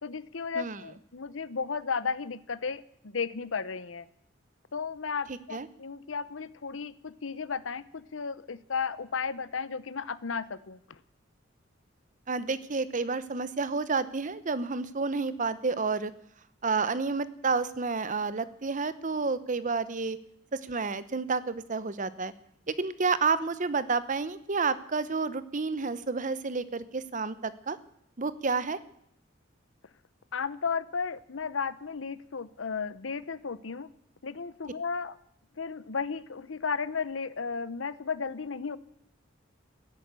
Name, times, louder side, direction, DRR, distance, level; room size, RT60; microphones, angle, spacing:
voice 1, 0.0-4.1 4.7-11.0 30.3-33.9 34.2-35.2 35.6-38.8, left 5 dB, 80° left, 16 dB, 0.8 m, -34 dB
voice 2, 12.3-16.1 16.6-20.2 20.5-22.3 22.7-27.8 28.2-28.8, right 4 dB, 40° right, 15 dB, 0.8 m, -30 dB
16.0 x 11.0 x 8.3 m, 0.73 s
head